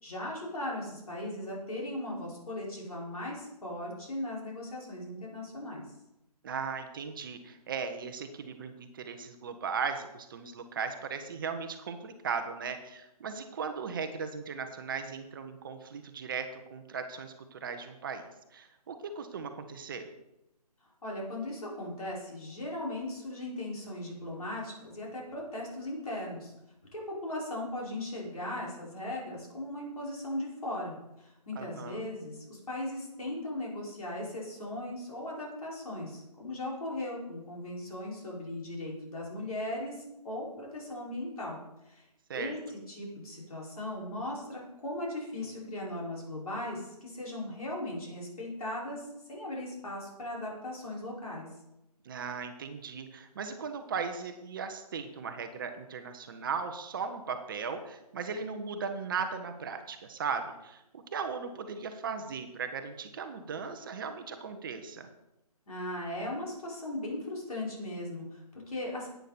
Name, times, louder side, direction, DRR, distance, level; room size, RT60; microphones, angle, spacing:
voice 1, 0.0-5.8 21.0-26.5 26.9-41.6 41.8-42.1 42.3-51.5 65.7-69.1, left 1 dB, 65° left, -3 dB, 5.0 m, -38 dB
voice 2, 6.4-18.2 18.5-20.1 31.6-32.1 42.3-42.5 52.0-65.1, right 5 dB, 35° right, 7 dB, 0.9 m, -37 dB
11.5 x 9.1 x 4.2 m, 0.89 s
figure-of-eight pair, 145°, 20 cm